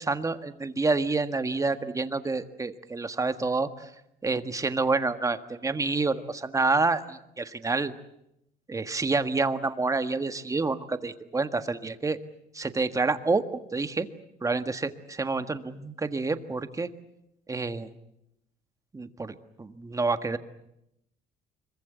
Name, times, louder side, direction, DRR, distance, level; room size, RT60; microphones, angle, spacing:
voice 1, 0.0-3.9 4.2-7.9 8.7-12.2 12.5-13.5 13.7-14.1 14.4-16.9 17.5-17.9 18.9-20.4, right 3 dB, 20° right, 9 dB, 1.6 m, -28 dB
25.0 x 23.0 x 8.2 m, 0.82 s
cardioid pair, 110°, 17 cm